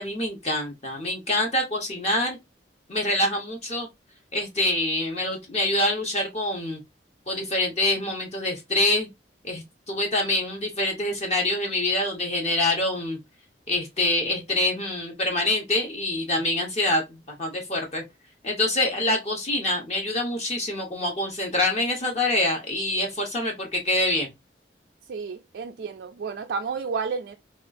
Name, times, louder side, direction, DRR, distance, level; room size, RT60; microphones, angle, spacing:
voice 1, 0.0-2.4 2.9-3.9 4.3-6.8 7.3-9.1 9.4-13.2 13.7-17.0 17.3-18.0 18.4-24.3, left 1 dB, 40° left, 0.8 m, -25 dB
voice 2, 25.1-27.3, right 5 dB, 65° right, 0.3 m, -31 dB
3.4 x 2.3 x 2.4 m
head